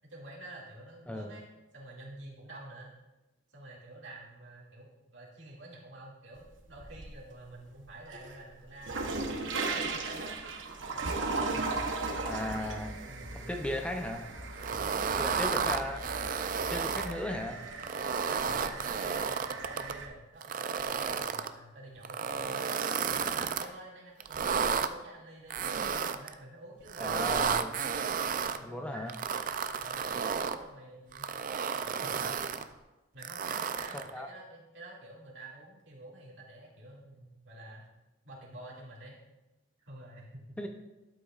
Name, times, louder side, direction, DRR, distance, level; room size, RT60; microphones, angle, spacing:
voice 1, 0.0-1.5 1.7-2.9 3.5-9.2 9.6-10.4 10.8-13.4 14.6-15.8 18.2-22.7 23.1-27.9 28.6-29.2 29.5-31.3 31.9-32.7 33.1-37.9 38.2-39.2 39.8-40.6, right 2 dB, 75° right, -3 dB, 2.3 m, -49 dB
sound 1, 6.3-7.3 7.7-20.1, right 3 dB, 90° right, 0.9 m, -37 dB
sound 2, 11.3-17.4, left 1 dB, 65° left, 2.4 m, -46 dB
voice 2, 12.3-12.9 13.3-14.2 15.1-16.0 16.7-17.6 27.0-27.7 28.6-29.1 33.9-34.3 40.6-40.7, left 1 dB, 5° left, 3 dB, 0.5 m, -36 dB
sound 3, 14.6-17.1 17.7-19.9 20.4-21.5 22.0-23.7 24.2-24.9 25.5-26.3 26.9-28.6 29.1-30.6 31.1-32.6 33.2-34.1, right 6 dB, 45° right, 0.4 m, -32 dB
12.0 x 7.9 x 2.4 m, 1.0 s
head